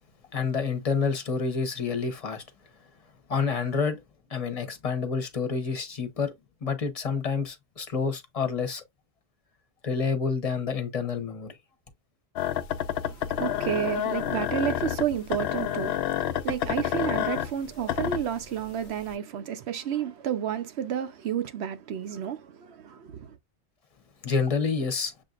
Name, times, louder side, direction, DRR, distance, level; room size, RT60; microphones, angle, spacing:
voice 1, 0.3-2.4 3.3-4.0 4.3-6.3 6.6-8.8 9.8-11.5 24.2-25.1, left 5 dB, 35° left, 0.9 m, -28 dB
sound 1, 12.4-18.6 19.1-19.2, left 10 dB, 70° left, 0.8 m, -29 dB
voice 2, 13.0-23.4, right 9 dB, 75° right, 1.0 m, -31 dB
7.0 x 2.7 x 2.4 m
omnidirectional pair, 1.1 m